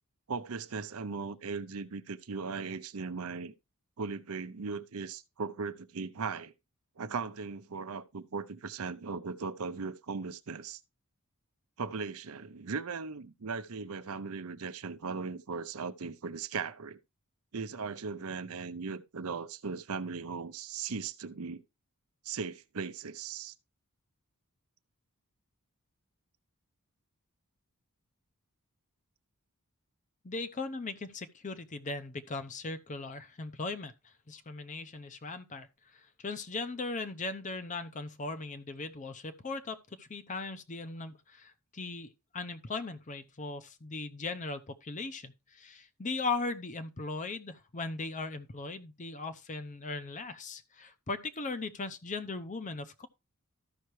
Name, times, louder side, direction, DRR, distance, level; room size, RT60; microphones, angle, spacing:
voice 1, 0.3-3.5 4.0-6.5 7.0-10.8 11.8-17.0 17.5-21.6 22.2-23.5, right 5 dB, 70° right, 0.7 m, -38 dB
voice 2, 30.2-53.1, left 3 dB, 35° left, 0.7 m, -38 dB
13.5 x 5.7 x 3.1 m
head